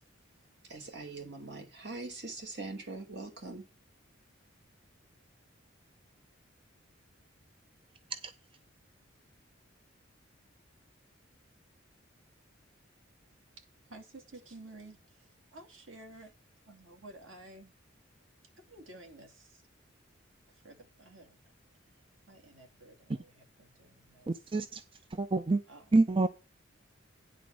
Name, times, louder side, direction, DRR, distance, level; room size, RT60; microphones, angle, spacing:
voice 1, 0.6-3.6, right 3 dB, 60° right, 2.7 m, -42 dB
voice 2, 13.6-16.3 16.6-17.7 18.6-19.6 20.5-21.4 22.3-24.5 25.7-25.9, right 2 dB, 80° right, 2.5 m, -53 dB
voice 3, 24.3-24.8 25.1-25.6 25.9-26.3, right 3 dB, 25° right, 0.5 m, -27 dB
10.5 x 4.0 x 7.4 m
head